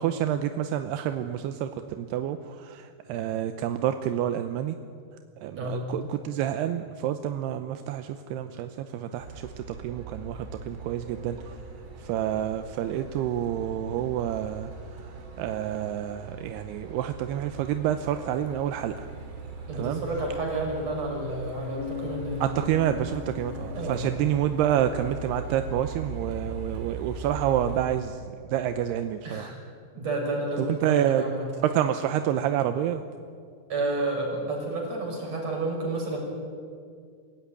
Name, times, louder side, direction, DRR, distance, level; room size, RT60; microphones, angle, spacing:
voice 1, 0.0-4.8 5.4-11.5 12.0-14.7 15.4-18.9 19.8-20.0 22.4-29.5 30.6-31.3 31.6-33.0, right 10 dB, 80° right, 8 dB, 2.6 m, -28 dB
Truck, 9.2-27.9, right 4 dB, 50° right, 4.1 m, -40 dB
voice 2, 19.7-22.4 23.7-24.1 29.2-29.5 29.9-31.5 33.7-36.2, right 2 dB, 35° right, 0 dB, 6.7 m, -30 dB
Bass guitar, 21.8-25.6, left 15 dB, 85° left, 4.2 m, -41 dB
26.0 x 16.0 x 10.0 m, 2.2 s
omnidirectional pair, 5.1 m